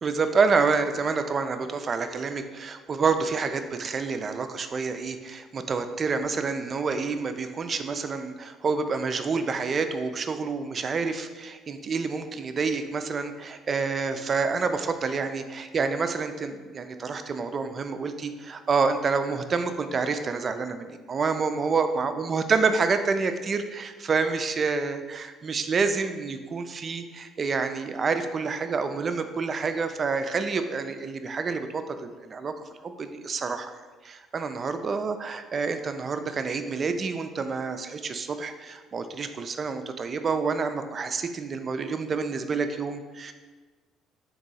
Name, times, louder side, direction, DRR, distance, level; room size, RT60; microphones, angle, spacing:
voice 1, 0.0-32.5 32.8-33.7 34.0-43.3, right 4 dB, 45° right, 8 dB, 0.4 m, -28 dB
3.6 x 2.9 x 4.1 m, 1.4 s
hypercardioid pair, 60°, 0 cm